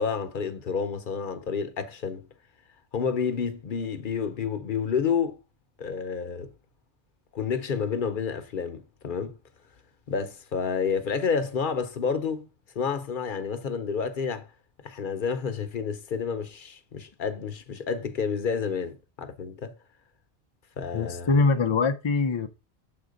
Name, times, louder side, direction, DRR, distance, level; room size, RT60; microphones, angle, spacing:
voice 1, 0.0-2.3 2.9-5.4 5.8-6.5 7.3-9.4 10.1-12.5 12.7-14.5 14.8-19.7 20.8-21.3, left 6 dB, 55° left, 0.9 m, -29 dB
voice 2, 20.9-22.5, left 4 dB, 40° left, 0.5 m, -23 dB
7.2 x 3.9 x 5.1 m
omnidirectional pair, 1.1 m